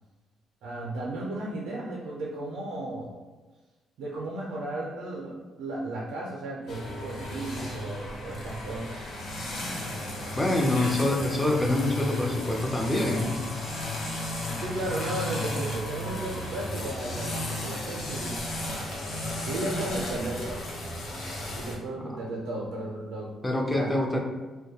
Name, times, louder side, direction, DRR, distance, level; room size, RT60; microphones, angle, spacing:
voice 1, 0.6-3.1 4.0-9.0 10.4-10.5 14.6-18.4 19.4-20.6 21.6-23.3 23.7-23.9, right 2 dB, 90° right, -4 dB, 0.4 m, -34 dB
sound 1, 6.7-21.7, left 1 dB, 70° left, 0.6 m, -34 dB
voice 2, 10.4-13.3 22.0-22.2 23.4-24.2, left 1 dB, 10° left, 0 dB, 0.5 m, -26 dB
2.2 x 2.1 x 2.7 m, 1.3 s
cardioid pair, 90°, 0 cm